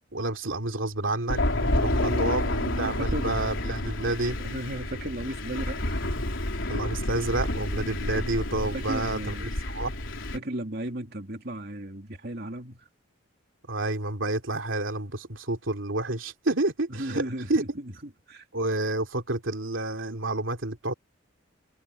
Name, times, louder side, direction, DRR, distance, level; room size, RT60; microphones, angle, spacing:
voice 1, 0.1-2.4 2.8-4.4 6.7-9.9 13.7-17.6 18.5-20.9, right 2 dB, 75° right, 2.8 m, -29 dB
Thunder, 1.3-10.4, left 1 dB, 70° left, 3.7 m, -29 dB
voice 2, 1.4-3.3 4.4-6.0 8.7-9.5 10.3-12.9 16.9-18.5, right 1 dB, 50° right, 2.7 m, -35 dB
head